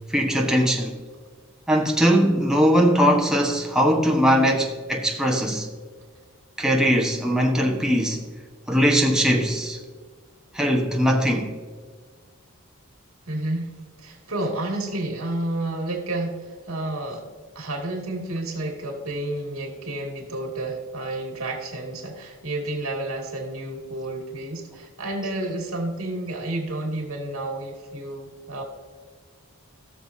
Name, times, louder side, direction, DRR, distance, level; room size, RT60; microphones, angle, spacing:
voice 1, 0.1-1.0 1.7-5.7 6.6-8.2 8.7-9.8 10.5-11.5, equal, 5° right, 1.2 m, -20 dB
voice 2, 13.3-17.3 17.5-28.6, right 1 dB, 75° right, 2.5 m, -30 dB
17.5 x 6.9 x 2.8 m
head